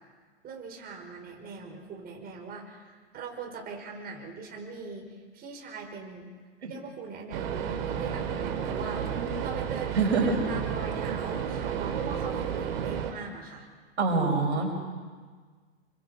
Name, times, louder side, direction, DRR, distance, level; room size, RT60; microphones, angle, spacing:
voice 1, 0.4-6.3 6.6-9.1 9.4-13.7, right 5 dB, 25° right, 0 dB, 5.1 m, -41 dB
sound 1, 7.3-13.1, right 8 dB, 60° right, 3.2 m, -32 dB
voice 2, 10.0-10.4 14.0-14.7, right 3 dB, 80° right, 2 dB, 5.6 m, -25 dB
28.5 x 25.0 x 5.2 m, 1.5 s
hypercardioid pair, 110°, 34 cm